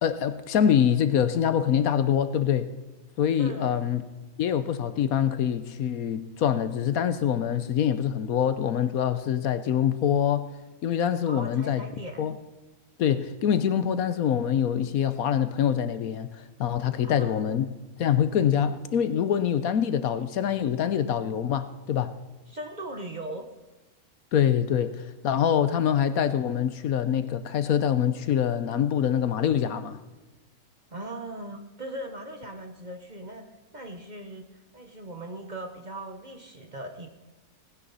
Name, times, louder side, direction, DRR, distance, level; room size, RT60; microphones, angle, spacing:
voice 1, 0.0-2.7 3.2-4.0 4.4-10.5 10.8-11.8 12.2-12.3 13.0-16.3 16.6-17.7 18.0-22.1 24.3-30.0, left 9 dB, 70° left, 1.2 m, -25 dB
voice 2, 3.4-3.8 11.3-12.2 17.0-17.6 22.5-23.5 30.9-33.4 33.7-37.1, right 1 dB, 30° right, 1.2 m, -39 dB
18.0 x 9.8 x 4.1 m
omnidirectional pair, 1.6 m